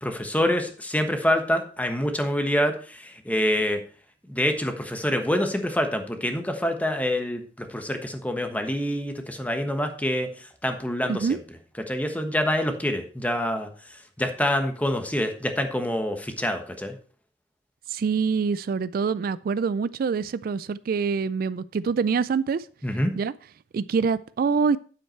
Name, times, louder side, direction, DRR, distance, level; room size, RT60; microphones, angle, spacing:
voice 1, 0.0-3.8 4.3-11.4 11.9-13.7 14.2-17.0 22.8-23.1, left 1 dB, 10° left, 6 dB, 1.2 m, -26 dB
voice 2, 11.1-11.4 17.9-22.7 23.2-23.3 23.7-24.8, right 5 dB, 55° right, 17 dB, 0.3 m, -25 dB
9.3 x 7.8 x 4.4 m, 0.40 s
head